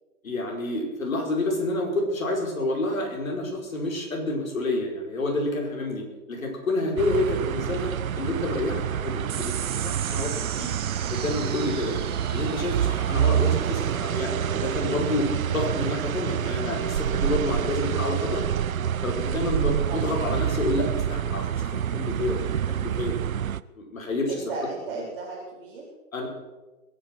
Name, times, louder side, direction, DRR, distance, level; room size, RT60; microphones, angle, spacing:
voice 1, 0.2-10.7 11.1-11.9 12.3-18.5 19.0-22.4 22.7-23.1 23.8-24.3 26.1-26.3, left 2 dB, 65° left, 0 dB, 5.1 m, -29 dB
sound 1, 7.0-23.6, right 9 dB, 65° right, 0.6 m, -27 dB
sound 2, 9.3-16.1, right 9 dB, 15° right, 1.0 m, -39 dB
voice 2, 19.4-20.2 24.3-25.9, right 3 dB, 35° right, -7 dB, 4.0 m, -36 dB
21.5 x 10.0 x 6.0 m, 1.1 s
figure-of-eight pair, 150°, 44 cm